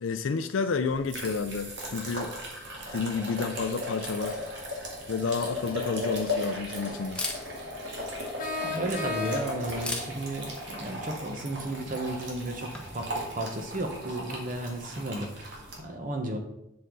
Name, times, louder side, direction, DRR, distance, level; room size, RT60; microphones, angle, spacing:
voice 1, 0.0-2.4 2.9-4.4 5.1-7.3, left 5 dB, 75° left, 0.5 m, -30 dB
sound 1, 0.8-15.8, left 1 dB, 60° right, 1.9 m, -37 dB
Camera, 4.8-13.1, left 2 dB, 5° left, 1.0 m, -43 dB
sound 2, 8.4-9.8, left 3 dB, 40° left, 0.9 m, -34 dB
voice 2, 8.6-16.4, right 1 dB, 40° right, 1.1 m, -34 dB
7.6 x 6.8 x 3.9 m
head